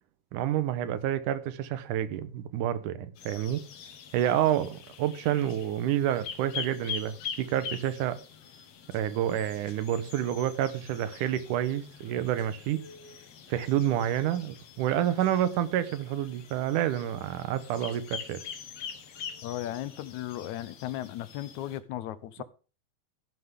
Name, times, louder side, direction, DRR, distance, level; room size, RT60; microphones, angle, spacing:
voice 1, 0.3-3.6 4.1-8.2 8.9-12.8 13.5-18.4, right 11 dB, 90° right, 2.5 m, -29 dB
sound 1, 3.1-21.8, left 7 dB, 60° left, 2.4 m, -44 dB
voice 2, 19.4-22.4, left 13 dB, 75° left, 2.1 m, -36 dB
14.0 x 11.0 x 3.7 m
omnidirectional pair, 3.5 m